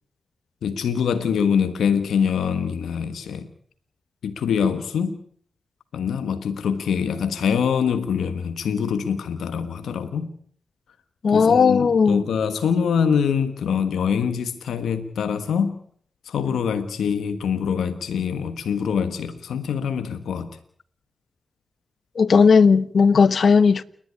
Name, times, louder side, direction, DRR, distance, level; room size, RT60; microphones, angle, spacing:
voice 1, 0.6-3.5 4.2-5.2 5.9-10.3 11.3-15.8 16.2-20.6, left 7 dB, 90° left, 1.3 m, -24 dB
voice 2, 11.2-12.2 22.2-23.8, left 5 dB, 70° left, 1.1 m, -16 dB
29.0 x 11.5 x 9.7 m
cardioid pair, 45°, 0 cm